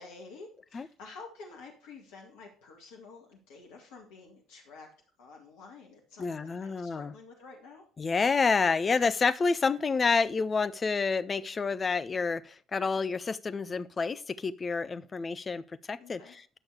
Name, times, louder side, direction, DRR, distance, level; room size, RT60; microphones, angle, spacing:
voice 1, 0.0-4.9 5.2-7.8 16.0-16.4, left 4 dB, 65° left, 1 dB, 2.0 m, -50 dB
voice 2, 6.2-7.1 8.0-16.6, left 4 dB, 30° left, 13 dB, 0.6 m, -29 dB
11.0 x 6.2 x 4.8 m, 0.42 s
figure-of-eight pair, 50°, 0 cm